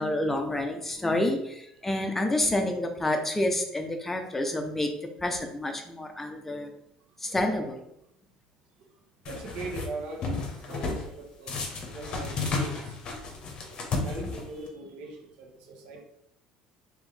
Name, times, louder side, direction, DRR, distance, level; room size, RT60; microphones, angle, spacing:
voice 1, 0.0-4.9 5.2-6.7 7.2-7.8, left 1 dB, 10° left, 4 dB, 0.6 m, -28 dB
sound 1, 9.3-9.9 10.2-11.1 11.5-14.7, left 3 dB, 45° left, 0.8 m, -32 dB
voice 2, 9.3-10.3 10.7-13.0 13.7-16.0, right 3 dB, 80° right, 0 dB, 1.1 m, -40 dB
3.8 x 2.9 x 3.3 m, 0.76 s
cardioid pair, 120°, 2 cm